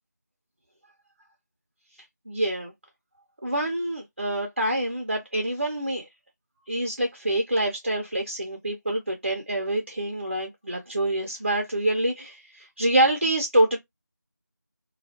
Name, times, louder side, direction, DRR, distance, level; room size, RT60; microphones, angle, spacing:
voice 1, 2.3-2.7 3.4-6.1 6.7-13.8, right 1 dB, 40° right, 0.5 m, -26 dB
2.2 x 2.1 x 2.7 m
figure-of-eight pair, 170°, 10 cm